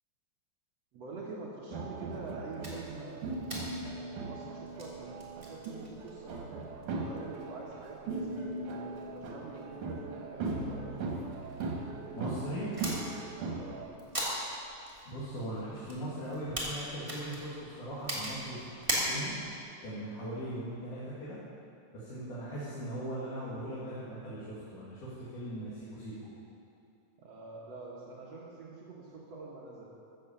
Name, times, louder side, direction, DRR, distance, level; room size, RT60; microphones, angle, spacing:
voice 1, 0.9-3.4 3.9-11.0 13.5-13.9 27.2-29.9, right 3 dB, 60° right, -4 dB, 2.3 m, -46 dB
sound 1, 1.7-13.8, right 3 dB, 80° right, 2.9 m, -39 dB
sound 2, 2.6-19.6, right 1 dB, 10° right, 1.9 m, -42 dB
voice 2, 12.1-12.7 15.1-19.3 19.8-21.4 21.9-26.3, right 1 dB, 85° left, -10 dB, 3.6 m, -39 dB
14.0 x 7.1 x 7.0 m, 2.6 s
omnidirectional pair, 3.5 m